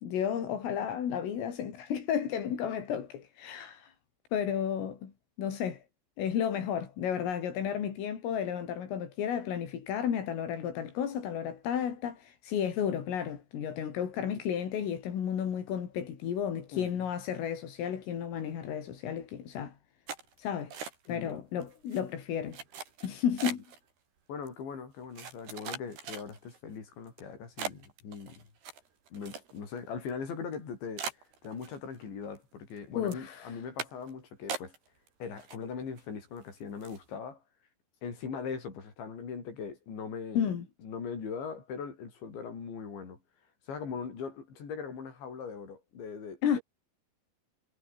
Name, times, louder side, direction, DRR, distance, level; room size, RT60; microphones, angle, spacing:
voice 1, 0.0-3.9 4.3-5.1 5.4-5.8 6.2-19.7 20.4-20.7 21.1-22.6 23.0-23.6 33.0-33.5 40.4-40.7 46.4-46.6, left 8 dB, 85° left, 6.3 m, -32 dB
voice 2, 16.7-17.1 21.1-21.4 23.4-23.5 24.3-28.5 29.1-34.7 35.2-37.4 38.0-40.5 40.8-43.2 43.7-46.6, left 6 dB, 65° left, 8.5 m, -40 dB
sound 1, 20.1-21.3 21.6-22.0 22.5-23.8 24.5-24.6 25.2-26.6 27.1-27.2 27.6-29.8 30.1-30.2 30.5-30.6 31.0-32.0 32.4-32.8 33.1-33.3 33.8-34.1 34.5-35.1 35.4-36.0 36.4-36.5 36.8-37.1, right 6 dB, 55° right, 6.8 m, -40 dB
omnidirectional pair, 5.7 m